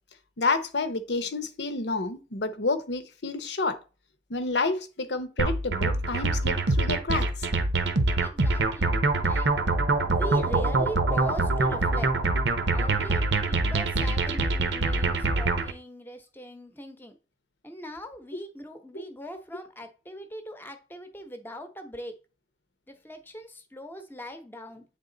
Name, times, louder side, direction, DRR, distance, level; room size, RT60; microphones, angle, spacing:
voice 1, 0.4-3.8 4.3-7.5 18.9-19.0, left 3 dB, 75° left, 0.8 m, -29 dB
sound 1, 5.4-15.7, right 3 dB, 90° right, 0.8 m, -25 dB
voice 2, 8.2-8.9 9.2-9.5 10.1-12.1 12.7-17.2 17.6-22.1 22.9-24.8, equal, 10° left, 0.8 m, -40 dB
8.4 x 3.7 x 3.8 m
head